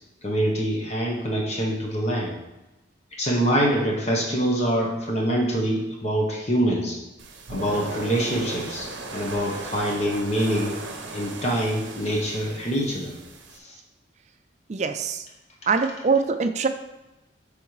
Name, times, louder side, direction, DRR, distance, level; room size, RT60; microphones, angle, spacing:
voice 1, 0.2-2.3 3.1-7.0 7.5-10.8 11.1-13.1 13.6-13.7 15.8-15.9, equal, 35° left, -2 dB, 0.9 m, -25 dB
sound 1, 7.2-13.6, right 2 dB, 70° right, 0.7 m, -37 dB
voice 2, 14.7-15.3 15.7-16.7, right 4 dB, 35° right, 8 dB, 0.4 m, -23 dB
8.4 x 3.5 x 3.2 m, 1.0 s
head